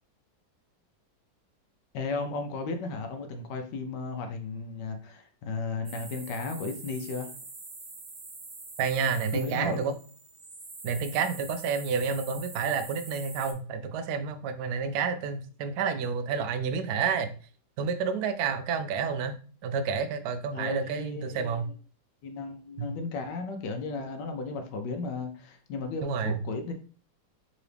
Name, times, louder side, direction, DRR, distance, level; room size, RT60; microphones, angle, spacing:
voice 1, 1.9-7.3 9.3-9.9 20.5-21.7 22.2-26.7, left 3 dB, 75° left, 1.2 m, -35 dB
sound 1, 5.8-13.5, right 3 dB, 45° right, 0.8 m, -45 dB
voice 2, 8.8-10.0 10.8-17.3 17.8-19.4 19.6-21.7 22.8-22.9 26.0-26.4, right 6 dB, 70° right, 0.9 m, -29 dB
3.8 x 2.9 x 3.3 m
omnidirectional pair, 2.0 m